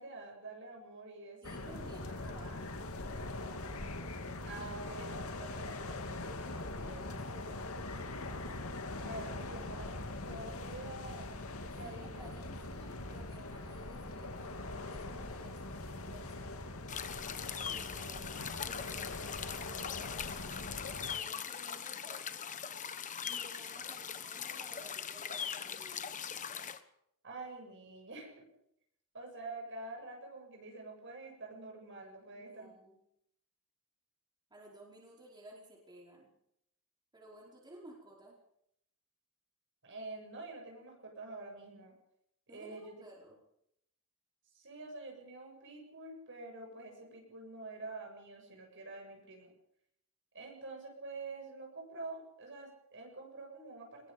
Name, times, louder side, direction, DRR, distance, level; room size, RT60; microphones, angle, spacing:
voice 1, 0.0-1.8 4.4-6.0 9.0-11.4 11.7-12.3 17.6-18.3 27.2-28.5 29.1-32.7 39.8-41.9 42.5-43.0 44.5-49.5 50.3-54.1, right 2 dB, 60° right, 1 dB, 7.3 m, -47 dB
sound 1, 1.4-21.2, left 2 dB, 80° left, 2.3 m, -42 dB
voice 2, 1.4-2.8 4.5-4.6 4.9-7.7 11.8-15.8 16.1-16.6 18.6-20.7 21.1-22.3 23.2-26.2 32.3-33.0 34.5-36.3 37.1-38.4 42.5-43.4, right 1 dB, 20° right, -3 dB, 5.1 m, -56 dB
sound 2, 16.9-26.8, left 7 dB, 35° left, 1.2 m, -41 dB
23.5 x 21.0 x 5.3 m, 0.74 s
head